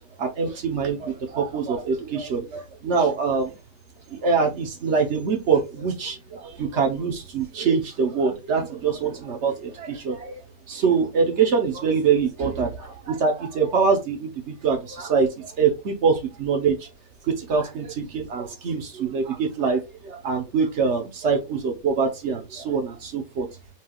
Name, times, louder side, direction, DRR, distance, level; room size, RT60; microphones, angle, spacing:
voice 1, 0.2-3.6 4.1-10.4 10.7-16.9 17.3-23.5, right 5 dB, 50° right, 3 dB, 1.0 m, -24 dB
5.6 x 3.3 x 2.3 m, 0.26 s
omnidirectional pair, 1.9 m